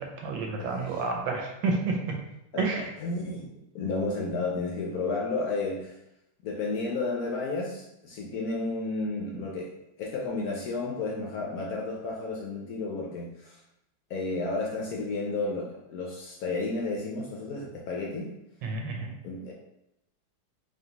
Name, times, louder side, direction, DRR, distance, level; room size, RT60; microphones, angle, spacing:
voice 1, 0.0-2.2 2.6-2.9 18.6-19.1, right 3 dB, 80° right, 1 dB, 1.5 m, -30 dB
voice 2, 0.6-1.0 2.5-3.5 3.7-6.0 6.4-9.7 10.0-13.6 14.1-18.3 19.2-19.5, left 3 dB, 70° left, -1 dB, 0.9 m, -32 dB
4.3 x 3.2 x 2.9 m, 0.85 s
omnidirectional pair, 2.0 m